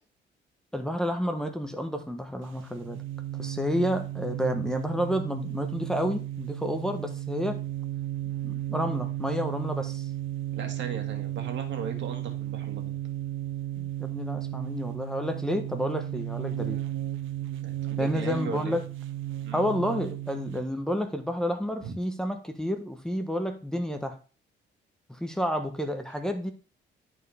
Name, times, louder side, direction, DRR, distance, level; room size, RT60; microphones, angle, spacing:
voice 1, 0.7-3.0 3.3-7.6 8.4-10.1 13.8-16.8 18.0-18.8 19.5-24.2 25.2-26.5, equal, 5° left, 5 dB, 1.0 m, -30 dB
sound 1, 2.4-20.7, right 13 dB, 85° right, 0.7 m, -34 dB
voice 2, 10.5-12.9 17.6-18.8 19.4-19.6 21.8-22.0, right 6 dB, 70° right, 4 dB, 1.8 m, -37 dB
11.0 x 4.6 x 3.5 m, 0.38 s
cardioid pair, 90°, 20 cm